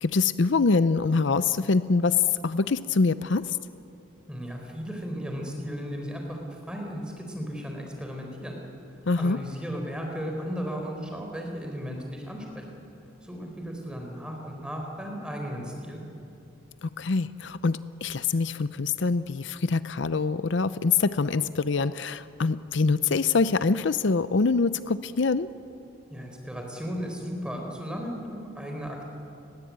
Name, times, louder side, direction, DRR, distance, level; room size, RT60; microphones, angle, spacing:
voice 1, 0.0-3.6 9.1-9.4 16.8-25.5, left 4 dB, 65° left, 14 dB, 0.6 m, -24 dB
voice 2, 4.3-6.4 6.7-8.6 9.2-12.8 13.2-16.0 26.1-29.0, equal, 5° right, 1 dB, 4.4 m, -35 dB
30.0 x 21.0 x 8.8 m, 2.7 s
head